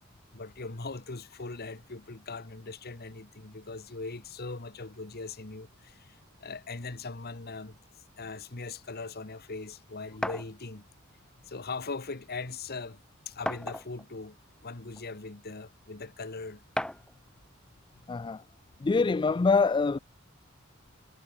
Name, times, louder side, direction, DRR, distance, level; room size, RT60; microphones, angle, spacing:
voice 1, 0.3-7.8 8.2-10.8 11.4-13.0 13.2-14.4 14.6-16.6, left 3 dB, 45° left, 1.5 m, -40 dB
sound 1, 10.2-10.5 11.6-11.7 12.2-12.3 13.5-14.1 14.9-15.0 16.8-17.1, left 1 dB, 5° left, 1.4 m, -34 dB
voice 2, 18.1-18.4 18.8-20.0, left 4 dB, 20° left, 0.3 m, -25 dB
head